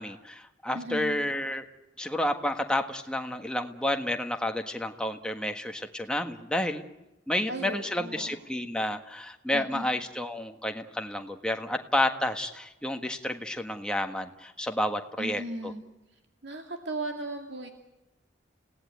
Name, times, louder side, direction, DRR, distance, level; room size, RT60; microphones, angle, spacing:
voice 1, 0.0-1.6 2.0-6.8 7.3-15.7, left 1 dB, 5° left, 4 dB, 1.5 m, -30 dB
voice 2, 0.7-1.2 7.5-8.3 9.5-9.8 15.2-15.8 16.4-17.7, right 1 dB, 65° right, 3 dB, 2.4 m, -36 dB
29.5 x 17.5 x 9.3 m, 0.97 s
head